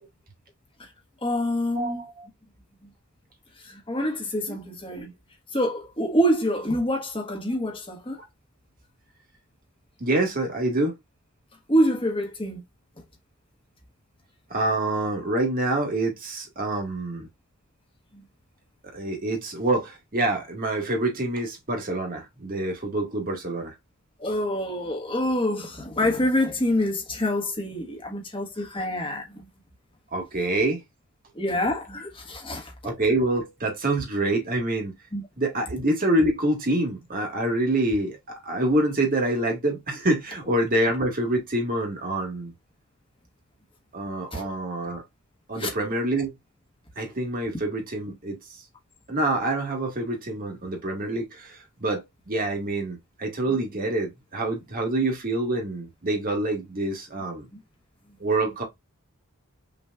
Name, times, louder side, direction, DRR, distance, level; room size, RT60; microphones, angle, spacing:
voice 1, 1.2-2.0 3.6-5.1 5.5-8.2 11.7-12.6 24.2-29.5 31.3-32.7 35.1-35.2 44.3-44.4 45.6-45.7, equal, 25° left, 1.4 m, -26 dB
voice 2, 1.7-2.3 4.5-4.6 10.0-10.9 14.5-17.3 18.9-23.7 30.1-30.8 32.8-34.9 35.4-42.5 43.9-45.0 45.5-46.3 46.9-48.4 49.1-57.4 58.2-58.6, right 2 dB, 40° right, 1.6 m, -26 dB
6.0 x 3.2 x 2.4 m
head